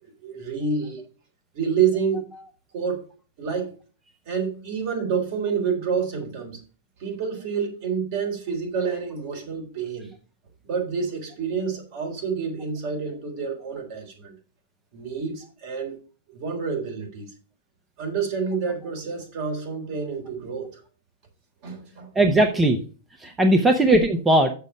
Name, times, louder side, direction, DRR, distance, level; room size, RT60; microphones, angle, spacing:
voice 1, 0.0-1.0 1.5-2.3 2.7-3.0 3.4-3.7 4.3-6.6 7.0-10.1 10.6-14.3 14.9-16.0 16.3-17.3 18.0-20.8 21.6-22.1 23.3-23.4, right 6 dB, 50° right, 2 dB, 3.6 m, -28 dB
voice 2, 22.1-22.8 23.2-24.5, right 1 dB, 10° right, 5 dB, 0.8 m, -18 dB
6.8 x 6.2 x 5.6 m, 0.38 s
hypercardioid pair, 140°, 0 cm